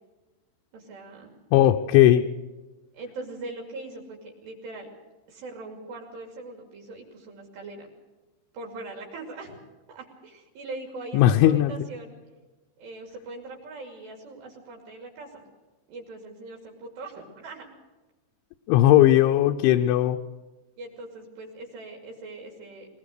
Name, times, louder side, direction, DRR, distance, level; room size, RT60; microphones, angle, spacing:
voice 1, 0.7-1.3 2.9-4.9 5.3-7.9 8.5-9.6 9.9-12.2 12.8-15.5 15.9-17.7 20.8-22.9, right 2 dB, 65° right, 0 dB, 4.6 m, -41 dB
voice 2, 1.5-2.3 11.1-11.7 18.7-20.2, left 13 dB, 80° left, 3 dB, 3.1 m, -18 dB
21.5 x 19.5 x 6.6 m, 1.2 s
omnidirectional pair, 5.6 m